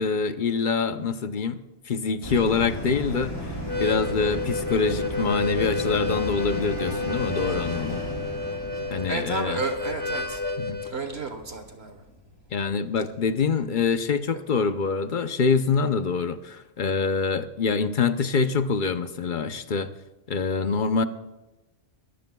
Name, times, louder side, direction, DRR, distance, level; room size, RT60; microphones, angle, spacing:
voice 1, 0.0-3.5 3.8-8.0 8.9-9.6 10.6-10.8 12.5-19.9 20.3-21.0, left 5 dB, 50° left, 10 dB, 0.7 m, -25 dB
sound 1, 2.2-12.9 13.3-13.4, equal, 20° left, 5.2 m, -35 dB
Harmonica, 3.6-10.9, left 2 dB, 30° right, 1.1 m, -30 dB
voice 2, 9.1-10.4 10.9-12.0, right 3 dB, 60° right, 6 dB, 1.4 m, -31 dB
24.0 x 15.0 x 2.3 m, 1.1 s
omnidirectional pair, 1.3 m